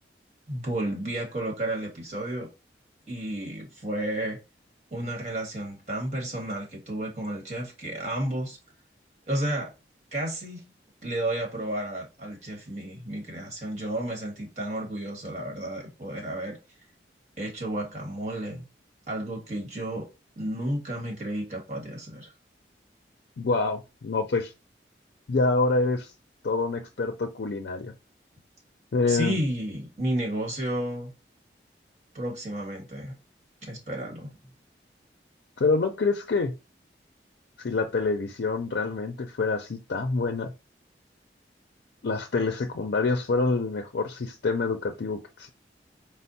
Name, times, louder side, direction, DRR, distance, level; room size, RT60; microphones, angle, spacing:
voice 1, 0.5-2.5 3.1-4.4 4.9-8.6 9.3-9.7 10.1-10.6 11.0-16.6 17.4-18.6 19.1-20.1 20.4-22.3 29.1-31.1 32.1-33.1 33.7-34.3, right 1 dB, 40° right, 1.4 m, -32 dB
voice 2, 23.4-24.5 25.3-26.1 26.4-27.9 28.9-29.4 35.6-36.5 37.6-40.5 42.0-45.5, left 3 dB, 70° left, 0.4 m, -26 dB
4.3 x 2.0 x 4.0 m
head